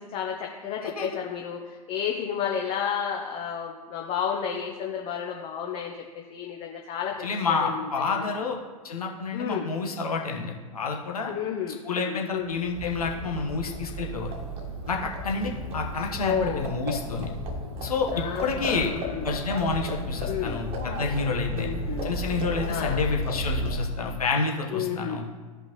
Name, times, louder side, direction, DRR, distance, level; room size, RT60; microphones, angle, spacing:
voice 1, 0.0-6.0 6.3-7.9 8.2-8.3 9.3-9.7 11.3-12.6 16.2-16.7 18.1-19.4 20.3-20.6 21.5-22.2 22.7-23.0 24.7-25.3, left 8 dB, 30° left, 1 dB, 0.9 m, -32 dB
voice 2, 7.2-8.6 8.8-11.3 11.8-14.3 14.9-17.3 17.8-18.9 19.2-21.7 22.0-25.2, left 4 dB, 75° left, 1 dB, 1.3 m, -29 dB
Livestock farm animals working animals, 12.5-24.1, equal, 30° right, 1.4 m, -33 dB
14.0 x 5.3 x 3.1 m, 1.4 s
figure-of-eight pair, 95°, 19 cm